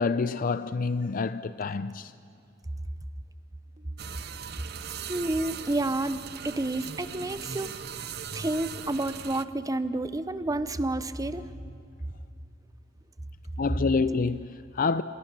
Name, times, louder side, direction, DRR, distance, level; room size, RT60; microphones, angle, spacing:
voice 1, 0.0-2.1 13.6-15.0, left 4 dB, 45° left, 0.5 m, -27 dB
sound 1, 3.8-4.1 4.4-13.1, equal, 40° right, 1.6 m, -48 dB
sound 2, 4.0-9.5, right 8 dB, 60° right, 0.7 m, -39 dB
voice 2, 5.1-7.7 8.3-11.5, right 2 dB, 20° right, 0.7 m, -30 dB
27.5 x 20.5 x 6.1 m
head